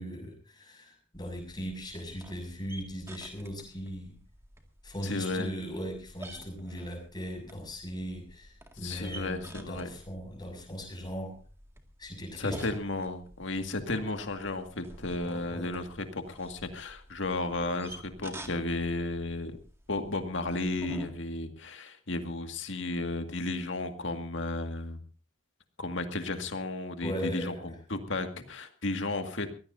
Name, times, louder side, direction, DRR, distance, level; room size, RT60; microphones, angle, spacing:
voice 1, 0.0-4.2 4.8-11.4 12.0-12.6 15.2-15.7 27.0-27.6, equal, 20° left, 2 dB, 6.4 m, -38 dB
sound 1, 1.1-21.1, right 1 dB, 15° right, 2.1 m, -49 dB
voice 2, 5.0-5.5 8.8-9.9 12.4-19.6 19.9-25.0 25.8-29.5, left 2 dB, 70° left, 6 dB, 2.0 m, -33 dB
23.5 x 16.5 x 2.7 m, 0.37 s
head